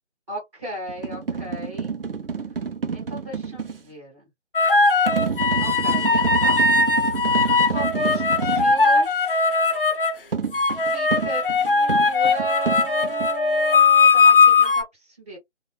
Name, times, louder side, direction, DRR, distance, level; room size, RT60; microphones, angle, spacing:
voice 1, 0.3-2.0 2.9-4.3 5.6-6.8 7.6-9.4 10.9-15.4, right 1 dB, 20° right, 0.9 m, -36 dB
sound 1, 0.9-3.8 5.1-8.8 10.3-13.3, right 5 dB, 50° right, 0.5 m, -28 dB
sound 2, 4.5-10.1 10.5-14.8, left 4 dB, 50° left, 0.6 m, -19 dB
2.2 x 2.0 x 3.1 m
figure-of-eight pair, 160°, 36 cm